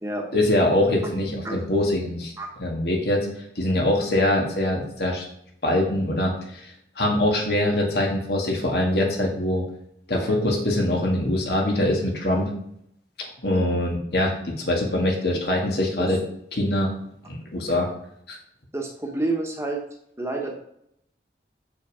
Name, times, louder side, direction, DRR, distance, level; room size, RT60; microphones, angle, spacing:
voice 1, 0.3-2.3 2.6-3.3 3.6-5.2 5.6-6.6 7.0-9.6 10.1-12.5 13.4-16.2 16.5-16.9 17.3-17.9 18.3-18.4, left 1 dB, 70° left, 0 dB, 1.9 m, -23 dB
voice 2, 18.7-19.8 20.2-20.6, right 2 dB, 15° right, 1 dB, 1.2 m, -28 dB
7.2 x 6.4 x 4.9 m, 0.72 s
head